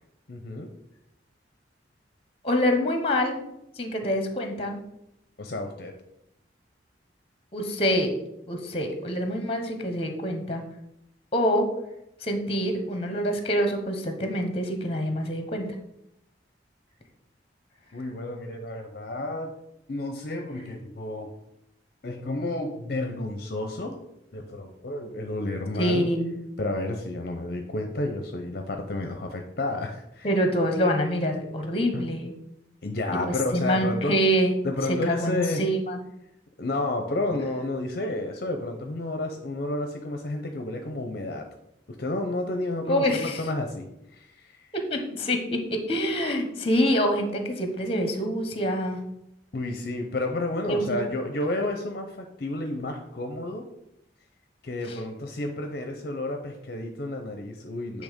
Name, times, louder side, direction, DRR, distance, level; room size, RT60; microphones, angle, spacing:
voice 1, 0.3-0.7 5.4-5.9 17.9-19.6 19.9-21.3 22.0-24.0 24.3-26.1 26.6-30.3 31.9-32.1 32.8-34.1 34.6-35.6 36.6-41.5 42.0-44.7 49.5-53.7 54.6-58.0, left 2 dB, 55° left, 4 dB, 0.6 m, -31 dB
voice 2, 2.4-3.4 3.8-4.8 7.5-8.1 8.5-10.6 11.3-11.7 12.2-15.7 25.8-26.4 30.2-32.3 33.2-34.5 35.1-36.0 42.9-43.4 44.7-49.0 50.7-51.0 54.9-55.0, equal, 30° left, 5 dB, 1.0 m, -26 dB
8.6 x 3.3 x 5.1 m, 0.82 s
head